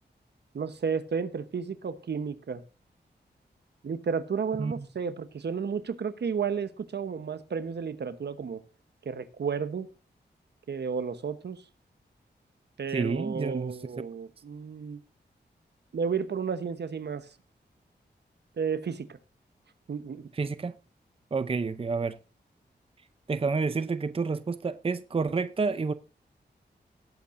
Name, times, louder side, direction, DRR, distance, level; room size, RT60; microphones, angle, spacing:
voice 1, 0.5-2.6 3.8-8.6 9.0-9.9 10.7-11.6 12.8-15.0 15.9-17.3 18.6-19.2 19.9-20.3, right 6 dB, 70° right, 1.0 m, -32 dB
voice 2, 12.9-13.8 20.3-20.7 21.3-22.2 23.3-25.9, right 4 dB, 30° right, 0.6 m, -29 dB
18.0 x 8.6 x 2.6 m
wide cardioid pair, 80°, 18 cm